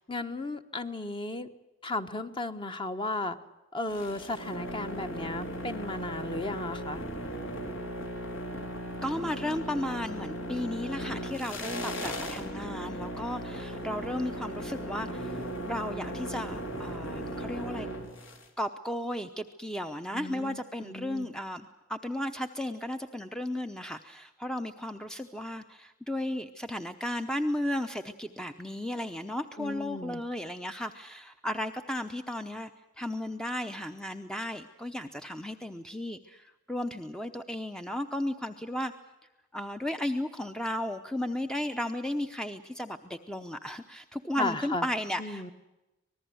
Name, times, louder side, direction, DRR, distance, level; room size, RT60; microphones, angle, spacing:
voice 1, 0.1-1.5 1.8-3.4 3.7-7.0 20.1-21.3 29.6-30.2 44.4-44.9 45.2-45.5, left 2 dB, 25° left, 8 dB, 1.3 m, -35 dB
sound 1, 3.9-18.5, equal, 70° left, 3.7 m, -37 dB
voice 2, 9.0-17.9 18.6-32.7 33.0-38.9 39.5-45.5, left 1 dB, 5° left, 7 dB, 0.8 m, -34 dB
25.5 x 19.5 x 7.9 m, 1.0 s
head